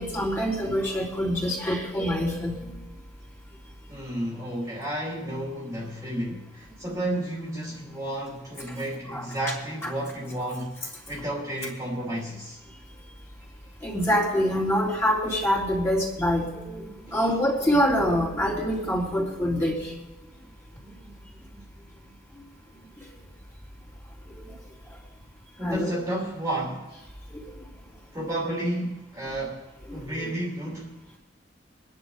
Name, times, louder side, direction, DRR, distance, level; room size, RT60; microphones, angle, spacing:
voice 1, 0.0-2.6 9.1-9.3 9.8-9.9 13.8-19.9 25.6-25.9 27.3-27.4 29.9-30.3, equal, 15° left, 3.5 m, -25 dB
voice 2, 3.9-10.8 11.1-12.6 17.0-17.3 25.6-26.9 28.1-29.7 29.9-31.0, right 1 dB, 15° right, 2.7 m, -32 dB
24.5 x 10.5 x 4.0 m
head